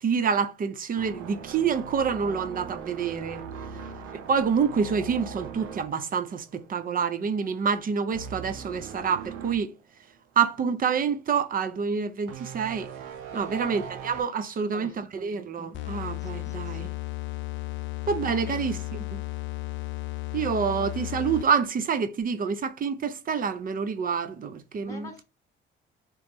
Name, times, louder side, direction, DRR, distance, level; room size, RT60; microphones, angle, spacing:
voice 1, 0.0-3.4 4.3-9.7 10.4-12.9 13.3-16.9 18.1-18.8 19.1-19.2 20.3-25.1, right 6 dB, 45° right, 0.6 m, -27 dB
sound 1, 0.9-7.0 7.3-7.6 8.1-9.6 10.1-10.2 12.3-14.2, right 6 dB, 90° right, 0.7 m, -40 dB
voice 2, 3.5-4.0 13.3-13.7 14.4-15.2 16.2-16.9 18.2-18.6 24.8-25.2, left 2 dB, 15° left, 0.9 m, -46 dB
sound 2, 15.7-21.7, left 18 dB, 75° left, 0.4 m, -34 dB
3.1 x 3.0 x 3.4 m
cardioid pair, 90°, 20 cm